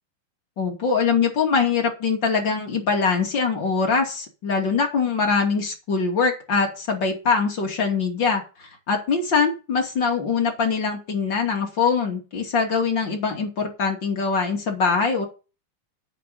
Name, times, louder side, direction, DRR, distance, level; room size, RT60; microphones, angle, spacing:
voice 1, 0.6-15.3, left 5 dB, 35° left, 2 dB, 2.9 m, -23 dB
9.1 x 6.4 x 8.6 m, 0.32 s
omnidirectional pair, 4.2 m